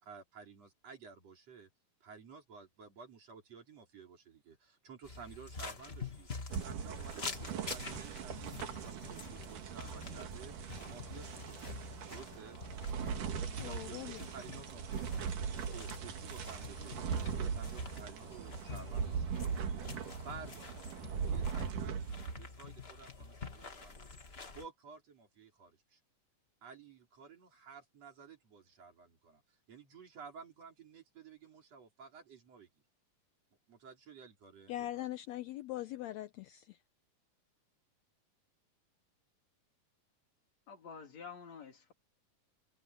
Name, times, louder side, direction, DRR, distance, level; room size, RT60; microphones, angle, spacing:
voice 1, 0.0-1.7 2.0-10.5 10.9-11.6 12.1-12.6 13.5-15.4 15.7-19.3 20.2-20.7 21.2-24.2 24.5-26.0 26.6-29.4 29.7-32.7 33.7-35.0, right 6 dB, 50° right, 4.7 m, -53 dB
sound 1, 5.0-24.7, left 4 dB, 30° left, 1.2 m, -48 dB
sound 2, 6.5-22.4, right 6 dB, 80° right, 3.6 m, -40 dB
voice 2, 13.4-14.3 34.7-36.8, left 14 dB, 80° left, 1.6 m, -42 dB
voice 3, 40.7-41.9, left 6 dB, 60° left, 3.9 m, -49 dB
omnidirectional pair, 3.6 m